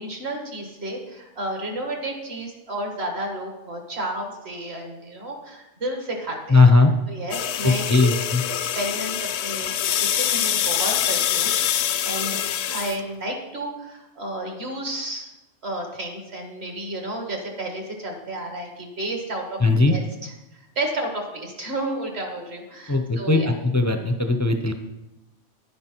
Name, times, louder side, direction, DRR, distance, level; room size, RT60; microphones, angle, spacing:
voice 1, 0.0-6.7 7.1-8.1 8.6-9.1 9.4-11.5 12.0-15.3 15.6-19.6 19.9-20.3 20.8-23.5, right 1 dB, 55° right, 2 dB, 2.3 m, -31 dB
voice 2, 6.5-6.9 7.6-8.4 19.6-20.0 22.9-23.4 23.7-24.7, left 3 dB, 20° left, 6 dB, 0.5 m, -18 dB
sound 1, 7.3-13.0, left 10 dB, 65° left, 0.8 m, -25 dB
11.0 x 10.5 x 4.5 m, 0.98 s
omnidirectional pair, 1.3 m